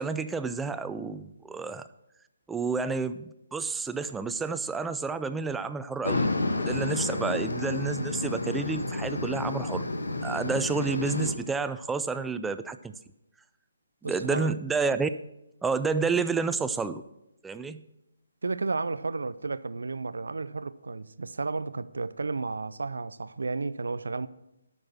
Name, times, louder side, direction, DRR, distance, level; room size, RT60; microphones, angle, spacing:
voice 1, 0.0-1.9 2.5-6.3 6.6-9.9 10.2-12.9 14.0-15.1 15.6-17.0 17.4-17.8, right 4 dB, 5° right, 0.4 m, -30 dB
sound 1, 6.0-11.3, left 2 dB, 70° left, 1.2 m, -30 dB
voice 2, 14.0-14.5 18.4-24.3, right 3 dB, 65° right, 0.5 m, -32 dB
9.5 x 6.2 x 7.4 m
figure-of-eight pair, 140°, 0 cm